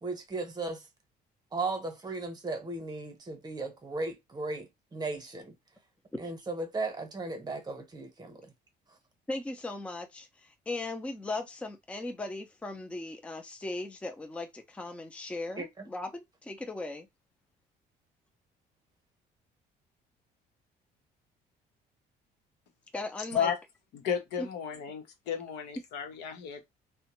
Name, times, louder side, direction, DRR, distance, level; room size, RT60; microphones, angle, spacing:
voice 1, 0.0-0.9 1.5-5.5 6.2-8.5 15.6-15.9, right 3 dB, 25° right, 0.9 m, -36 dB
voice 2, 9.3-17.1 22.9-23.5 24.4-24.5, left 2 dB, 5° left, 0.4 m, -38 dB
voice 3, 23.9-26.7, left 7 dB, 90° left, 0.8 m, -33 dB
2.5 x 2.1 x 2.9 m
cardioid pair, 110°, 17 cm